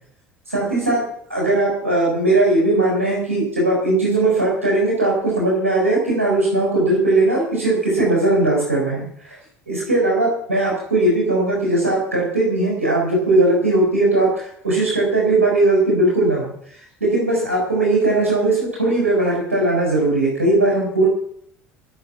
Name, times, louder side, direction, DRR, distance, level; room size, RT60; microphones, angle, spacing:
voice 1, 0.5-1.0 1.3-9.4 9.7-21.1, right 2 dB, 85° right, -3 dB, 4.1 m, -19 dB
16.0 x 6.8 x 8.4 m, 0.65 s
figure-of-eight pair, 65°, 7 cm